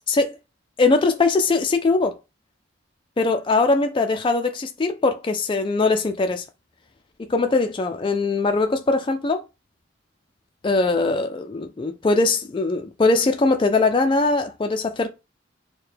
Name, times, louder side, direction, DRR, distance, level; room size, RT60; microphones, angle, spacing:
voice 1, 0.8-2.2 3.2-6.4 7.3-9.4 10.6-15.1, left 3 dB, 25° left, 0.3 m, -21 dB
4.6 x 2.2 x 3.3 m
head